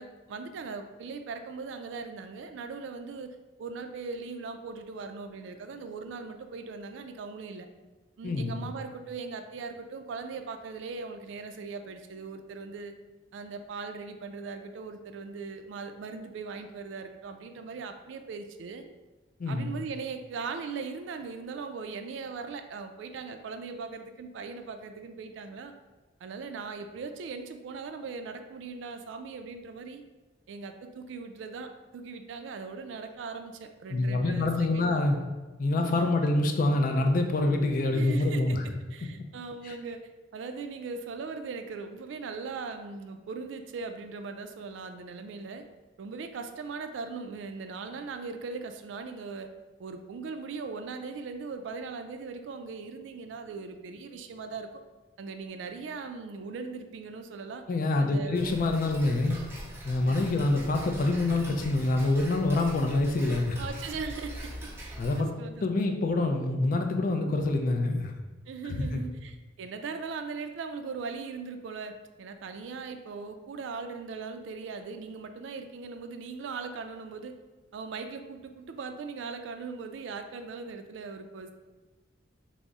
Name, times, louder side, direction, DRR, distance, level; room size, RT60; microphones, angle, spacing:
voice 1, 0.0-7.7 8.2-12.9 13.3-18.8 19.5-25.7 26.2-30.0 30.5-34.9 35.7-36.2 37.9-45.6 46.0-49.5 49.8-54.7 55.2-57.6 58.0-58.5 60.0-60.4 63.6-65.6 68.5-77.4 77.7-81.5, right 4 dB, 70° right, 7 dB, 0.3 m, -39 dB
voice 2, 8.2-8.6 19.4-19.7 33.9-35.2 35.6-38.6 39.6-39.8 57.7-59.4 59.8-63.6 65.0-65.3 65.6-68.1 68.6-69.0, left 2 dB, 45° left, 4 dB, 0.3 m, -26 dB
Tick-tock, 58.3-65.2, equal, 10° right, 0.6 m, -43 dB
3.9 x 2.0 x 3.5 m, 1.2 s
head